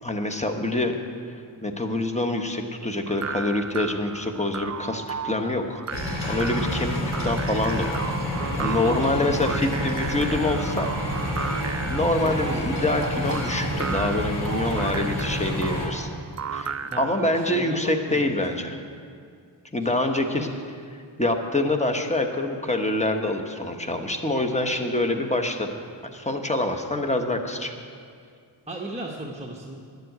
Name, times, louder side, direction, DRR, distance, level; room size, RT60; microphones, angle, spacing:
voice 1, 0.0-1.0 1.6-5.8 6.3-7.0 7.2-8.2 8.6-10.9 11.9-16.1 16.5-18.8 19.7-20.5 21.2-25.8 26.1-27.7, left 2 dB, 15° left, 4 dB, 1.1 m, -26 dB
sound 1, 3.1-17.3, right 6 dB, 40° right, 0.4 m, -35 dB
sound 2, 5.9-15.9, equal, 85° left, 3.2 m, -28 dB
voice 2, 8.7-10.2 12.2-12.9 16.9-18.5 19.9-20.6 28.7-29.7, right 1 dB, 15° right, -2 dB, 1.0 m, -37 dB
10.5 x 7.7 x 9.3 m, 2.2 s
wide cardioid pair, 80°, 45 cm